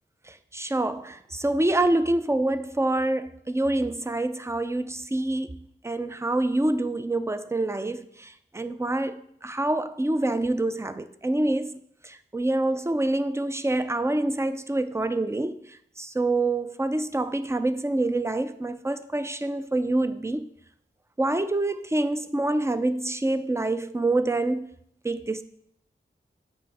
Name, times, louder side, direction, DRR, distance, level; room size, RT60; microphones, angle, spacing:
voice 1, 0.5-5.6 5.8-11.8 12.0-15.6 16.0-20.5 21.2-24.7 25.0-25.4, right 2 dB, 15° right, 0.4 m, -26 dB
6.8 x 5.5 x 4.2 m
wide cardioid pair, 60°, 21 cm